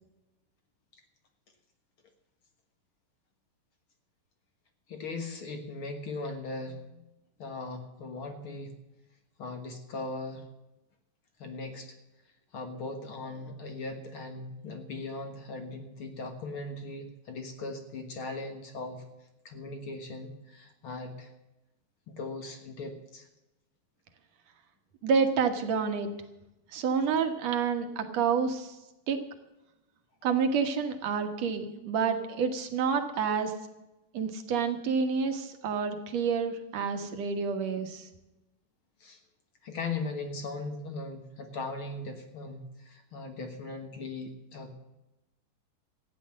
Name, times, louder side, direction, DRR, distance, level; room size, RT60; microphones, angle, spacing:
voice 1, 4.9-7.1 7.4-8.8 9.4-10.5 11.4-12.0 12.5-19.0 19.4-21.3 22.1-23.3 39.0-39.2 39.6-44.7, left 3 dB, 55° left, 5 dB, 1.6 m, -39 dB
voice 2, 25.0-26.1 26.7-28.8 29.1-29.2 30.2-33.5 34.1-38.1, right 6 dB, 60° right, 6 dB, 2.1 m, -28 dB
14.5 x 9.9 x 7.4 m, 0.97 s
omnidirectional pair, 4.1 m